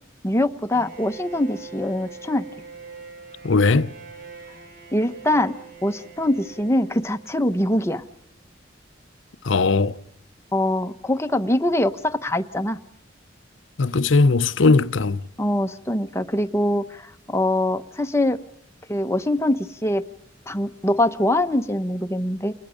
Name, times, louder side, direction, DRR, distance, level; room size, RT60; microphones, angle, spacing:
voice 1, 0.2-2.5 4.9-5.5 5.8-8.0 10.5-12.8 15.4-18.4 18.9-20.0 20.5-22.5, left 1 dB, 15° left, 1.0 m, -23 dB
Bowed string instrument, 0.7-7.6, right 5 dB, 50° right, 4.5 m, -43 dB
voice 2, 3.4-3.9 9.4-10.0 13.8-15.2, left 3 dB, 85° left, 0.8 m, -18 dB
29.5 x 21.0 x 5.1 m
head